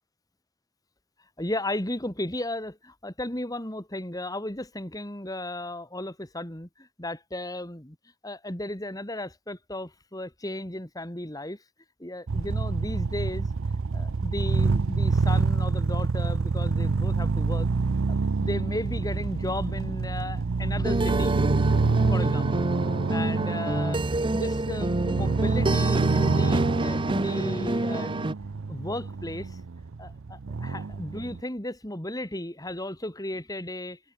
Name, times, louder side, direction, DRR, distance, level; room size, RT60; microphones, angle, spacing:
voice 1, 1.4-8.0 8.2-11.6 12.0-13.5 13.9-17.7 18.1-21.4 22.1-22.7 23.1-28.1 28.7-29.6 30.0-34.0, left 1 dB, 15° left, 2.3 m, -35 dB
sound 1, 12.3-31.4, right 4 dB, 60° right, 0.6 m, -27 dB
sound 2, 20.8-28.3, right 2 dB, 20° right, 0.7 m, -27 dB
head